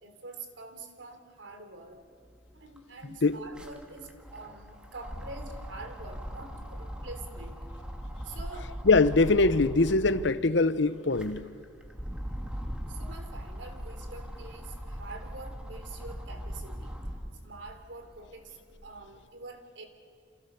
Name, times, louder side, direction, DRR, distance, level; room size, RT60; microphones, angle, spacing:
voice 1, 0.0-2.0 2.5-7.6 8.2-8.7 12.9-17.0 17.4-19.9, right 3 dB, 80° right, 3.3 m, -46 dB
sound 1, 2.2-2.3 2.6-10.4 10.9-17.4 17.9-19.0, equal, 5° right, 2.3 m, -40 dB
voice 2, 8.9-11.5, left 3 dB, 75° left, 0.9 m, -23 dB
29.0 x 27.0 x 6.9 m
head